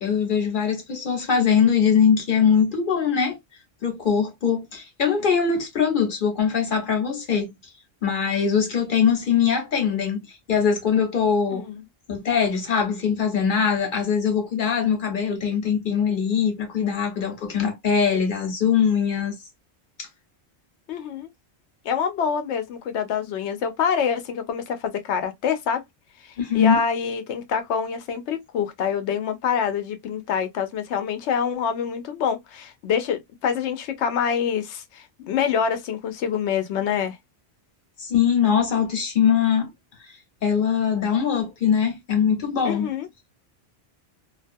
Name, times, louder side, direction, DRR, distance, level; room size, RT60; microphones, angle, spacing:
voice 1, 0.0-3.4 3.8-7.5 8.0-11.7 12.1-19.3 20.0-20.1 26.4-26.8 38.0-39.7 40.4-42.9, left 7 dB, 50° left, 1.0 m, -22 dB
voice 2, 11.5-11.8 20.9-21.3 21.8-25.8 26.5-37.2 42.6-43.1, left 7 dB, 85° left, 0.9 m, -26 dB
2.5 x 2.3 x 2.5 m
omnidirectional pair, 1.1 m